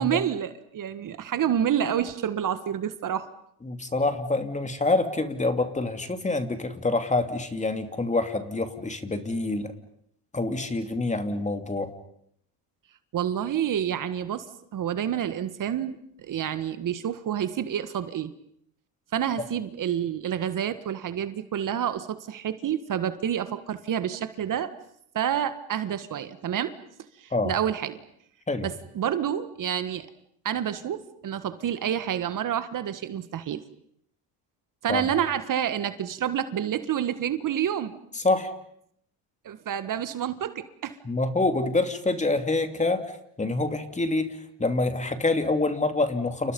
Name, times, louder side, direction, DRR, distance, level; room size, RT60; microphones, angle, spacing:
voice 1, 0.0-3.3 13.1-14.4 14.7-16.0 16.3-18.3 19.1-24.7 25.1-26.7 27.2-28.0 28.6-30.1 30.4-33.6 34.8-38.0 39.4-41.0, right 9 dB, 45° right, 11 dB, 1.7 m, -28 dB
voice 2, 3.6-9.7 10.3-11.9 27.3-27.5 28.5-28.7 34.9-35.0 38.1-38.5 41.0-43.0 43.4-46.5, left 2 dB, 15° left, 8 dB, 2.8 m, -26 dB
29.5 x 29.5 x 5.5 m, 0.71 s
cardioid pair, 100°, 42 cm